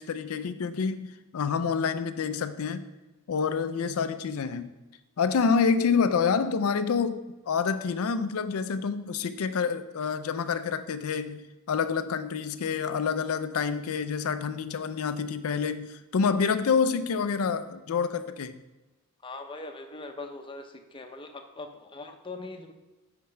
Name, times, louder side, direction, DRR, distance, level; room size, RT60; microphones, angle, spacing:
voice 1, 0.0-2.8 3.3-4.7 5.2-18.6, left 5 dB, 85° left, 12 dB, 0.4 m, -27 dB
voice 2, 19.2-22.7, left 3 dB, 25° left, 5 dB, 0.7 m, -41 dB
7.4 x 4.3 x 5.6 m, 1.1 s
head